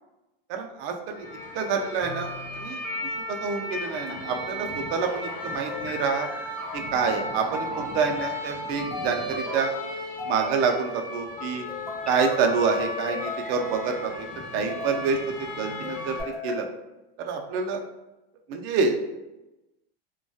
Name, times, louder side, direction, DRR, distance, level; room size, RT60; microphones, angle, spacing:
voice 1, 0.5-1.3 1.5-2.3 2.5-2.8 3.3-6.3 6.7-9.7 10.3-11.6 12.1-14.3 14.5-16.2 16.4-16.7 17.2-17.8 18.5-19.0, right 5 dB, 45° right, 4 dB, 0.4 m, -27 dB
sound 1, 1.1-16.2, left 2 dB, 25° left, 0.6 m, -35 dB
sound 2, 2.0-2.7 4.0-4.8 5.7-6.4 7.5-8.3 8.9-9.5 10.2-11.0 11.7-12.3 13.1-14.0 14.5-15.1 15.8-16.6, left 2 dB, ahead, 0.9 m, -38 dB
2.6 x 2.2 x 2.3 m, 0.99 s
supercardioid pair, 130°, 30 cm